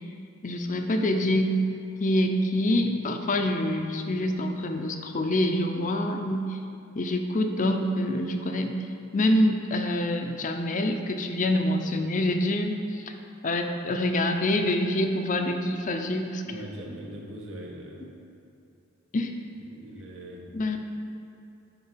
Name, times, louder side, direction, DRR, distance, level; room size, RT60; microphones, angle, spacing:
voice 1, 0.4-1.5 2.0-6.6 6.9-8.7 9.1-13.1 13.4-16.4 19.1-19.3 20.5-20.8, left 1 dB, 40° left, 5 dB, 0.6 m, -26 dB
voice 2, 16.4-18.1 19.5-20.5, right 1 dB, 70° right, -2 dB, 1.5 m, -41 dB
9.6 x 5.0 x 5.7 m, 2.7 s
head